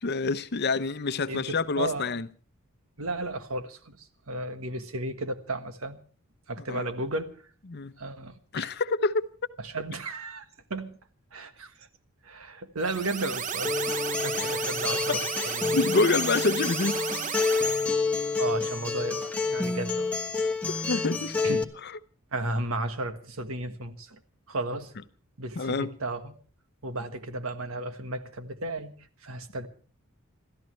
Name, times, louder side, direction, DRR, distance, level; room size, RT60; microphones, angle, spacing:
voice 1, 0.0-2.3 6.7-6.9 7.7-7.9 8.5-9.3 15.7-17.0 20.7-21.4 21.8-21.9 25.5-26.0, left 3 dB, 50° left, 0.8 m, -27 dB
voice 2, 1.3-2.1 3.0-6.0 6.5-7.3 8.0-8.7 9.6-10.4 10.7-10.9 11.3-11.9 12.2-13.7 14.2-15.8 18.4-20.1 21.4-21.6 22.3-24.2 24.5-24.9 25.4-26.3 26.8-28.9 29.2-29.7, right 2 dB, 70° right, 1.5 m, -34 dB
sound 1, 12.8-17.9, right 7 dB, 35° right, 0.7 m, -33 dB
Acoustic guitar, 13.6-21.6, left 4 dB, 5° left, 1.2 m, -29 dB
28.0 x 13.5 x 3.2 m
head